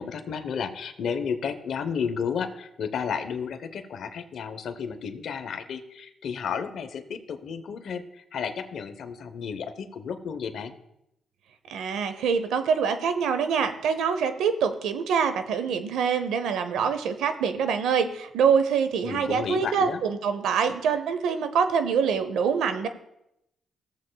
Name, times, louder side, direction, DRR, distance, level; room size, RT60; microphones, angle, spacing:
voice 1, 0.0-10.7 19.0-20.0, left 6 dB, 70° left, 9 dB, 0.8 m, -32 dB
voice 2, 11.7-22.9, right 6 dB, 85° right, 10 dB, 0.7 m, -25 dB
15.5 x 7.5 x 2.3 m, 0.82 s
cardioid pair, 75°, 0 cm